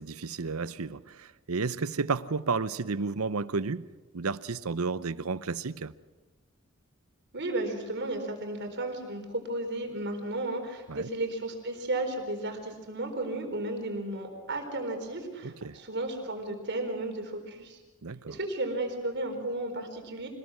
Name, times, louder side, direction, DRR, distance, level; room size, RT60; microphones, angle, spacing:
voice 1, 0.0-3.9 4.1-5.9 10.9-11.1 15.4-15.8 18.0-18.4, right 4 dB, 85° right, 0.8 m, -32 dB
voice 2, 7.3-17.8 18.2-20.3, right 2 dB, 55° right, 4.3 m, -34 dB
26.0 x 20.5 x 6.4 m
head